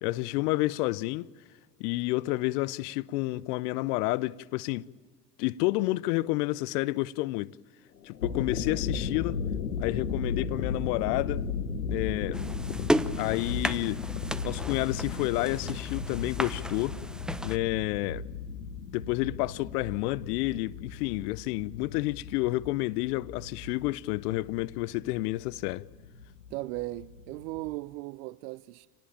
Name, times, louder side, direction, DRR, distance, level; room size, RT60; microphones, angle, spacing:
voice 1, 0.0-1.3 1.8-4.9 5.4-7.5 8.0-9.4 9.8-11.4 11.9-12.4 13.2-14.0 14.4-17.0 17.4-18.2 18.9-25.8, left 19 dB, 70° left, 0.8 m, -30 dB
sound 1, 8.0-27.7, left 6 dB, 90° left, 1.4 m, -36 dB
sound 2, 12.3-17.6, equal, ahead, 0.9 m, -34 dB
voice 2, 26.5-28.9, right 19 dB, 65° right, 0.7 m, -37 dB
27.0 x 19.5 x 8.8 m
hypercardioid pair, 70°, 49 cm